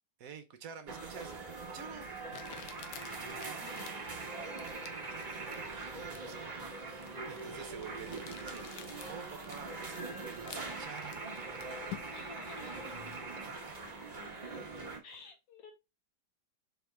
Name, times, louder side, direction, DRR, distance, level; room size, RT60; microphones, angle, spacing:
voice 1, 0.2-1.3 1.6-2.1 3.1-3.6 5.1-11.2 13.4-13.5, right 7 dB, 65° right, 1.1 m, -49 dB
sound 1, 0.9-15.0, right 3 dB, 30° right, 0.9 m, -42 dB
Crumpling crinkling, 1.4-1.5 2.3-12.4, left 11 dB, 90° left, 1.3 m, -51 dB
voice 2, 3.6-3.9 12.1-13.1 15.0-15.7, left 4 dB, 60° left, 1.6 m, -53 dB
4.2 x 3.5 x 3.2 m
omnidirectional pair, 1.8 m